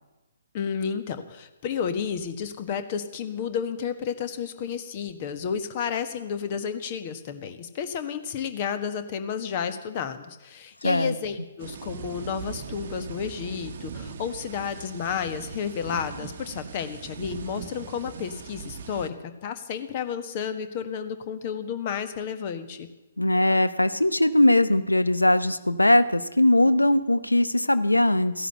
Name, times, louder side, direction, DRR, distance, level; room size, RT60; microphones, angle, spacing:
voice 1, 0.5-19.1 19.4-22.9, left 7 dB, 35° left, 10 dB, 1.5 m, -31 dB
voice 2, 10.8-11.1 23.2-28.5, left 1 dB, 85° left, 13 dB, 1.0 m, -20 dB
sound 1, 11.6-19.1, right 6 dB, 50° right, 1.0 m, -40 dB
15.5 x 11.0 x 8.0 m, 1.0 s
figure-of-eight pair, 130°, 0 cm